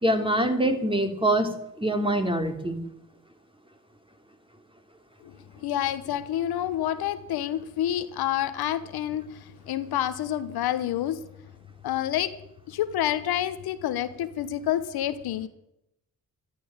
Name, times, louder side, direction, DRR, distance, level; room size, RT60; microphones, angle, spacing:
voice 1, 0.0-1.5 1.8-2.8, right 1 dB, 15° right, 6 dB, 3.1 m, -24 dB
voice 2, 5.6-11.2 11.8-12.3 12.7-15.5, left 11 dB, 85° left, 12 dB, 1.1 m, -28 dB
13.0 x 11.5 x 8.8 m, 0.82 s
supercardioid pair, 60°, 37 cm